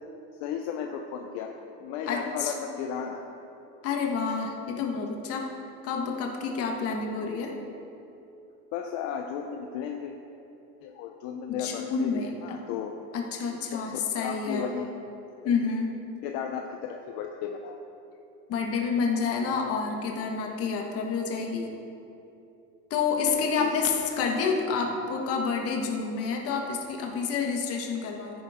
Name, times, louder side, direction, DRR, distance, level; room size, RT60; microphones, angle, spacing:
voice 1, 0.4-1.5 1.8-3.2 8.7-10.1 10.8-12.9 13.7-14.9 16.2-17.8 23.6-23.9, left 8 dB, 65° left, 3 dB, 0.8 m, -34 dB
voice 2, 2.1-2.5 3.8-5.5 5.8-7.5 11.5-12.3 13.1-14.7 15.4-15.9 18.5-21.7 22.9-28.4, left 5 dB, 45° left, 1 dB, 1.6 m, -29 dB
13.5 x 10.5 x 3.7 m, 2.9 s
cardioid pair, 160°, 34 cm